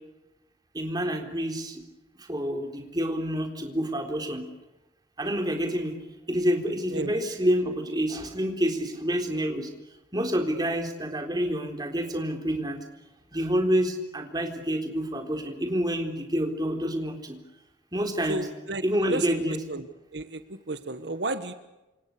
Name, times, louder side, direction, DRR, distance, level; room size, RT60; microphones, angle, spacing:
voice 1, 0.7-1.8 2.2-4.5 5.2-5.9 6.3-9.7 10.1-12.8 13.3-17.4 17.9-18.5 18.8-19.6, equal, 20° right, 4 dB, 3.9 m, -28 dB
voice 2, 18.3-18.8 19.1-19.3 19.7-19.9 20.1-20.4 20.7-21.5, right 2 dB, 75° right, 10 dB, 1.4 m, -31 dB
28.5 x 27.0 x 6.8 m, 1.0 s
head